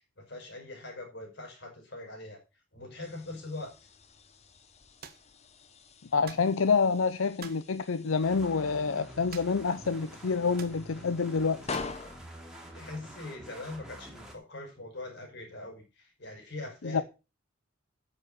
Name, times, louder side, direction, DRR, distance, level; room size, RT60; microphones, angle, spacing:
voice 1, 0.2-2.4 2.7-3.7 12.7-17.0, left 2 dB, 60° left, 5.6 m, -42 dB
sound 1, 3.0-13.9, left 4 dB, 35° left, 1.0 m, -46 dB
sound 2, 5.0-5.3 6.3-6.5 7.4-7.7 9.3-9.7 10.0-10.1 10.6-10.8 11.7-12.0, right 7 dB, 50° right, 1.3 m, -47 dB
voice 2, 6.1-11.6 16.8-17.0, left 5 dB, 85° left, 0.6 m, -27 dB
sound 3, 8.2-14.3, equal, 5° right, 3.0 m, -48 dB
9.7 x 7.5 x 6.7 m
head